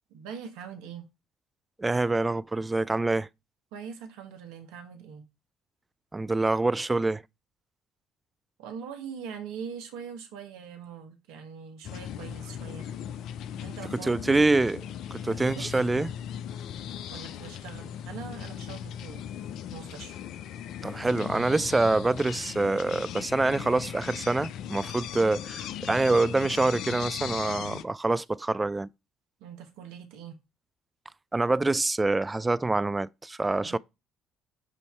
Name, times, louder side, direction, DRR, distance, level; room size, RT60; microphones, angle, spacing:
voice 1, 0.1-1.1 3.7-5.2 8.6-12.9 13.6-14.4 15.3-15.8 17.1-19.2 19.7-20.1 29.4-30.4 33.6-33.8, right 7 dB, 80° right, 1.2 m, -42 dB
voice 2, 1.8-3.3 6.1-7.2 14.0-14.8 15.2-16.1 20.8-28.9 31.3-33.8, right 2 dB, 20° right, 0.3 m, -26 dB
sound 1, 11.8-27.8, left 9 dB, 65° left, 0.5 m, -38 dB
8.1 x 2.8 x 4.4 m
hypercardioid pair, 60°, 0 cm